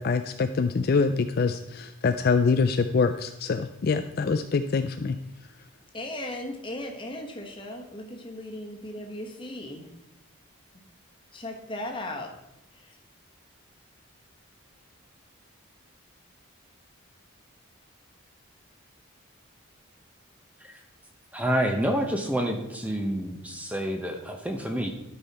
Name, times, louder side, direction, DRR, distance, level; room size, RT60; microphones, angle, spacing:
voice 1, 0.0-5.2, left 4 dB, 45° left, 9 dB, 0.3 m, -25 dB
voice 2, 5.9-9.9 11.3-12.3 12.7-12.9, left 1 dB, 25° left, 2 dB, 1.2 m, -37 dB
voice 3, 21.3-24.9, equal, 5° right, 4 dB, 0.8 m, -28 dB
12.0 x 5.5 x 4.2 m, 0.92 s
head